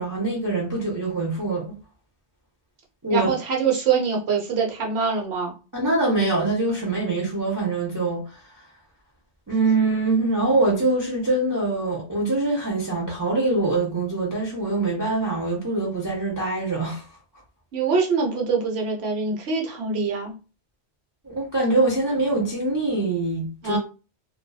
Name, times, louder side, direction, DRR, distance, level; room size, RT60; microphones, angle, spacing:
voice 1, 0.0-1.8 3.0-3.3 5.7-8.4 9.5-17.0 21.2-23.8, right 2 dB, 20° right, 0.5 m, -24 dB
voice 2, 3.1-5.5 17.7-20.3 23.6-23.8, right 5 dB, 65° right, 1.0 m, -24 dB
2.5 x 2.2 x 2.3 m
omnidirectional pair, 1.2 m